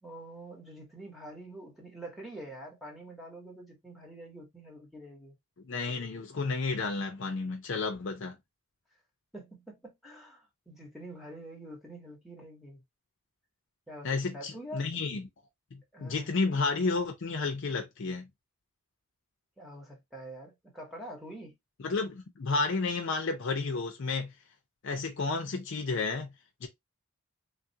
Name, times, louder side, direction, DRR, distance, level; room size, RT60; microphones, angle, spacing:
voice 1, 0.0-5.3 9.3-12.8 13.9-14.9 15.9-16.3 19.6-21.6, right 1 dB, ahead, 1.0 m, -46 dB
voice 2, 5.7-8.4 14.0-15.2 15.7-18.3 21.8-24.3 24.8-26.3 26.6-26.7, left 4 dB, 60° left, 0.5 m, -31 dB
3.2 x 2.4 x 2.7 m
head